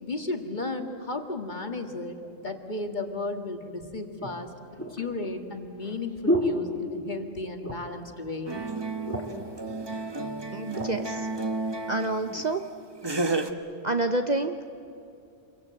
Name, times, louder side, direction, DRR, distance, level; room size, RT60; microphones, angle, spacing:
voice 1, 0.0-4.5 4.9-8.5, left 2 dB, 40° left, 5 dB, 1.9 m, -34 dB
sound 1, 3.2-3.3 4.2-7.3 7.6-8.1 8.4-8.5 8.8-9.5 10.2-11.0 11.6-11.8, equal, 10° left, 3.2 m, -31 dB
sound 2, 8.5-12.5 13.0-13.5, right 3 dB, 20° right, 1.1 m, -32 dB
voice 2, 10.5-11.3 11.9-12.6 13.1-13.4 13.8-14.7, right 2 dB, 40° right, 7 dB, 0.8 m, -28 dB
27.5 x 23.5 x 7.8 m, 2.6 s
omnidirectional pair, 1.3 m